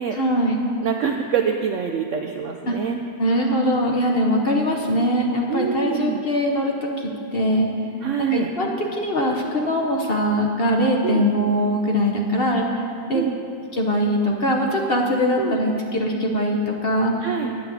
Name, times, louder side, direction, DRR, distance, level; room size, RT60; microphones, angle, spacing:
voice 1, 0.1-0.6 2.7-2.8 3.2-7.7 8.2-12.7 13.1-13.2 13.7-17.1, equal, 45° left, 0 dB, 1.0 m, -22 dB
voice 2, 0.8-3.0 5.5-6.2 8.0-8.5 11.0-11.3 13.1-13.3 15.4-15.6 17.2-17.5, right 7 dB, 70° right, 4 dB, 0.7 m, -25 dB
9.7 x 5.8 x 8.4 m, 2.4 s
omnidirectional pair, 1.8 m